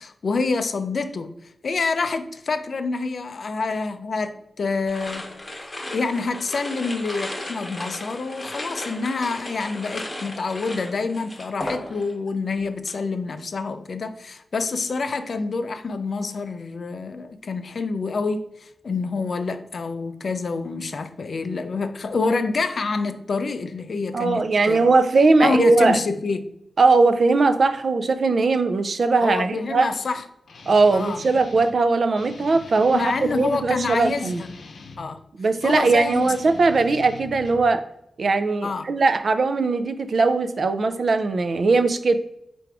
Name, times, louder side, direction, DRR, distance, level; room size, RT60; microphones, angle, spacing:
voice 1, 0.0-5.4 5.9-24.9 25.4-26.5 29.2-30.2 30.9-31.3 32.9-34.5 35.0-35.2 35.6-36.3 38.6-38.9, left 4 dB, 55° left, 0.4 m, -27 dB
sound 1, 4.9-12.3 12.6-13.0, left 1 dB, 15° left, 0.9 m, -35 dB
voice 2, 24.1-26.0 26.8-29.9 30.7-34.4 35.4-37.8 38.2-42.2, right 3 dB, 50° right, 0.4 m, -19 dB
Guitar, 30.5-31.8 32.1-35.1 35.5-37.7, left 4 dB, 90° left, 0.7 m, -42 dB
4.5 x 2.5 x 4.7 m
wide cardioid pair, 165°, 0 cm